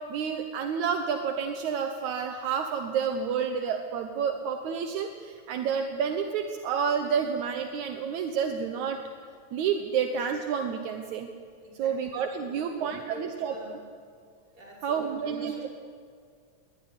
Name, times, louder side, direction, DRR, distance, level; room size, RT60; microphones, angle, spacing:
voice 1, 0.1-9.0 9.5-11.3 11.8-13.5 14.8-15.7, right 7 dB, 75° right, 6 dB, 2.4 m, -29 dB
voice 2, 11.6-12.0 12.4-12.7 13.0-13.8 14.5-15.7, left 1 dB, 30° right, -3 dB, 6.0 m, -46 dB
21.5 x 19.0 x 9.7 m, 2.1 s
omnidirectional pair, 3.4 m